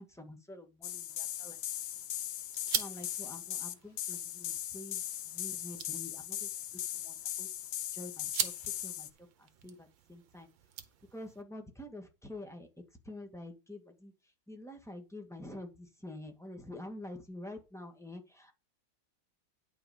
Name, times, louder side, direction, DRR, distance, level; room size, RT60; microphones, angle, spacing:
voice 1, 0.0-1.6 2.4-7.5 7.9-9.1 9.4-10.5 11.1-12.7 13.0-18.5, left 1 dB, ahead, 3 dB, 1.8 m, -48 dB
sound 1, 0.8-9.1, left 11 dB, 65° left, 1.2 m, -39 dB
sound 2, 1.1-11.4, right 10 dB, 75° right, 1.7 m, -43 dB
11.0 x 5.1 x 5.2 m, 0.28 s
omnidirectional pair, 2.2 m